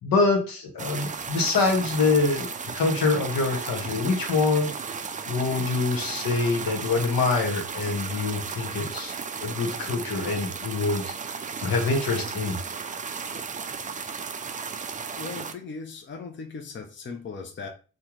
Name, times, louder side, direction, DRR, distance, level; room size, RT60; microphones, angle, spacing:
voice 1, 0.0-2.5 2.7-4.7 5.3-9.1 9.4-11.1 11.6-12.6, left 3 dB, 70° left, 1 dB, 1.1 m, -25 dB
sound 1, 0.8-15.5, right 5 dB, 20° right, 0.4 m, -34 dB
voice 2, 15.2-17.7, left 4 dB, 30° left, 3 dB, 0.7 m, -38 dB
3.5 x 2.2 x 3.0 m, 0.35 s
supercardioid pair, 50°, 37 cm